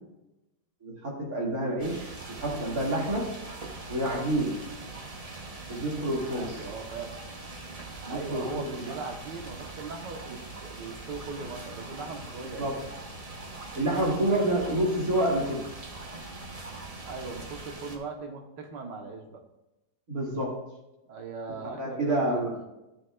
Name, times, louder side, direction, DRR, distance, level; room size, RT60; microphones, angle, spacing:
voice 1, 0.8-3.3 3.9-4.7 5.7-6.6 8.0-8.9 12.6-12.9 13.7-15.7 20.1-20.6 21.6-22.6, right 1 dB, 60° right, -3 dB, 2.6 m, -28 dB
sound 1, 1.8-18.0, right 2 dB, 30° right, 0.8 m, -42 dB
voice 2, 6.3-7.1 8.1-12.9 14.3-14.6 17.0-19.4 21.1-22.7, right 4 dB, 85° right, 3 dB, 1.8 m, -39 dB
12.5 x 6.9 x 2.4 m, 0.95 s
omnidirectional pair, 1.8 m